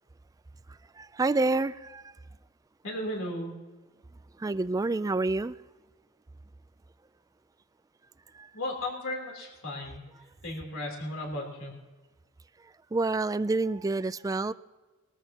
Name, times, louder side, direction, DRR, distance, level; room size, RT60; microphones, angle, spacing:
voice 1, 0.7-2.1 4.4-5.6 8.3-8.5 12.9-14.5, right 3 dB, 15° right, 0.3 m, -28 dB
voice 2, 2.8-3.5 8.5-10.0 10.4-11.7, left 1 dB, 70° left, 3.5 m, -35 dB
22.0 x 14.0 x 2.9 m
head